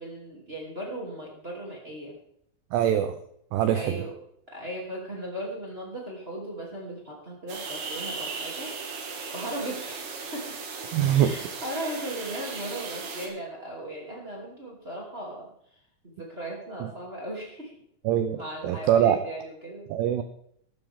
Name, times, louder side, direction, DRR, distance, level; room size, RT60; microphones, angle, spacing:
voice 1, 0.0-2.2 3.7-4.1 4.5-8.7 9.3-10.6 11.1-15.5 16.0-17.7 18.3-19.9, right 1 dB, 25° right, -3 dB, 1.3 m, -37 dB
voice 2, 2.7-3.2 3.5-4.0 10.9-11.3 18.1-19.2 19.9-20.2, right 10 dB, 85° right, 8 dB, 2.4 m, -23 dB
sound 1, 7.5-13.3, right 4 dB, 60° right, 3.5 m, -37 dB
14.0 x 13.0 x 3.6 m, 0.68 s
omnidirectional pair, 5.7 m